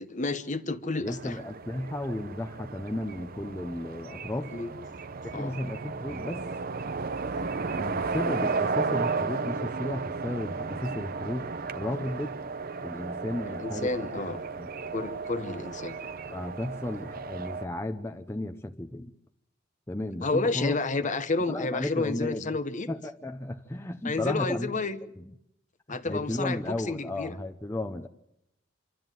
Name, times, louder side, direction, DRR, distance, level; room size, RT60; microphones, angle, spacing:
voice 1, 0.0-1.4 4.5-4.7 5.3-5.5 7.3-7.4 13.5-14.4 14.9-15.9 20.2-22.9 24.0-25.0 25.9-27.3, left 3 dB, 40° left, 12 dB, 1.0 m, -30 dB
voice 2, 1.0-4.5 5.2-6.5 7.7-11.5 11.7-12.4 12.8-14.9 16.3-19.1 19.9-20.8 21.5-22.6 22.9-25.3 25.9-28.1, left 1 dB, 15° left, 5 dB, 0.7 m, -34 dB
sound 1, 1.1-17.7, right 4 dB, 50° right, 0.7 m, -34 dB
26.5 x 13.0 x 9.2 m, 0.83 s
head